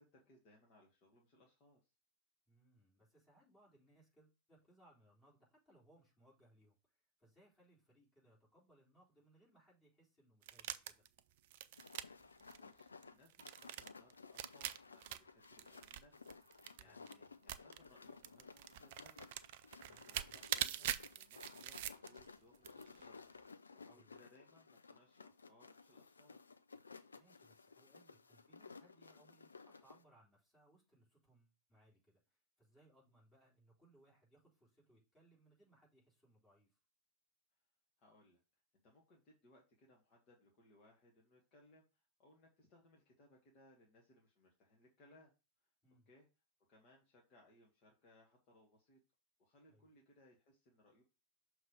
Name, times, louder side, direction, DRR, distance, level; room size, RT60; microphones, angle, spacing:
voice 1, 0.0-1.9 12.2-23.3 23.7-26.4 38.0-38.4 38.8-45.3 46.0-46.3 46.7-49.0 49.4-51.0, left 1 dB, 40° left, -2 dB, 1.5 m, -68 dB
voice 2, 2.5-6.8 7.2-11.0 16.8-17.0 19.8-20.4 23.9-24.1 27.2-32.2 32.6-36.7 45.8-46.1 49.7-49.9, right 1 dB, 15° left, -5 dB, 4.0 m, -69 dB
sound 1, 10.4-17.1 17.5-17.9 18.2-22.3 22.6-23.1, right 12 dB, 50° right, 0.4 m, -44 dB
sound 2, 11.8-30.0, left 4 dB, 75° left, 0.4 m, -58 dB
6.4 x 3.2 x 5.1 m, 0.30 s
figure-of-eight pair, 90°, 0 cm